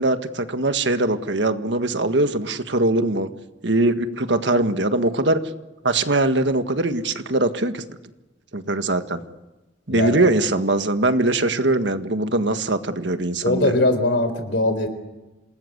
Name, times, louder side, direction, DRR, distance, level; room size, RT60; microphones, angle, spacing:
voice 1, 0.0-3.3 3.6-5.4 5.8-8.0 8.5-9.2 9.9-13.8, right 2 dB, 70° right, 9 dB, 1.7 m, -21 dB
voice 2, 9.9-10.3 13.4-14.9, left 2 dB, 65° left, 9 dB, 4.1 m, -21 dB
27.5 x 20.0 x 8.0 m, 1.1 s
head